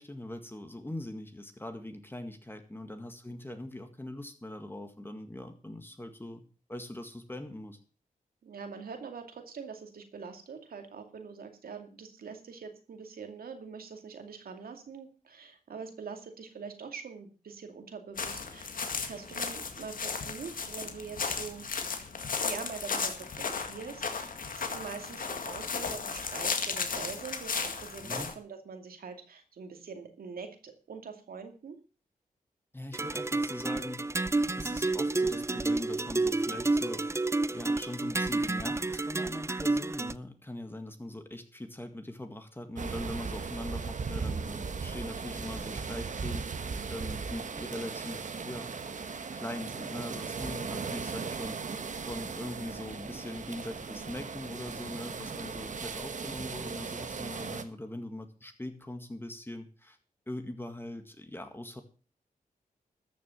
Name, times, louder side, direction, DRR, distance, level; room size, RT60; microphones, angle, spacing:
voice 1, 0.0-6.4 6.7-7.8 28.0-28.3 32.7-34.0 34.6-37.0 37.5-46.4 46.9-49.0 49.3-51.6 52.1-60.0 60.3-61.8, left 1 dB, 15° left, 7 dB, 1.8 m, -41 dB
voice 2, 8.4-21.7 22.4-31.8, right 5 dB, 80° right, 6 dB, 2.5 m, -44 dB
sound 1, 18.2-28.3, left 5 dB, 65° left, 2.0 m, -35 dB
sound 2, 32.9-40.1, right 2 dB, 20° right, 0.6 m, -30 dB
sound 3, 42.8-57.6, right 5 dB, 55° right, 1.4 m, -37 dB
13.5 x 6.8 x 7.2 m, 0.37 s
cardioid pair, 80°, 15 cm